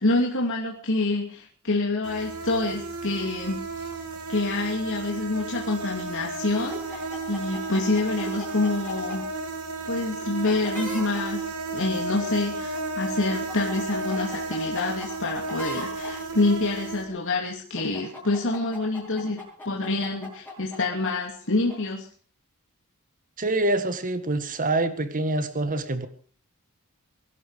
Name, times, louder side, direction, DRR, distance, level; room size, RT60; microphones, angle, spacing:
voice 1, 0.0-3.9 4.3-9.2 9.9-11.4 11.7-22.1, left 2 dB, 60° left, -1 dB, 2.8 m, -27 dB
sound 1, 2.0-17.0, right 3 dB, 85° right, 3.1 m, -33 dB
sound 2, 6.7-9.2 10.4-11.2 12.5-12.8 13.1-16.1 17.8-20.8 21.0-21.1 21.7-21.8, left 2 dB, 10° left, 7.9 m, -39 dB
voice 2, 23.4-26.1, right 2 dB, 40° right, 11 dB, 1.7 m, -26 dB
23.0 x 12.0 x 5.1 m, 0.44 s
head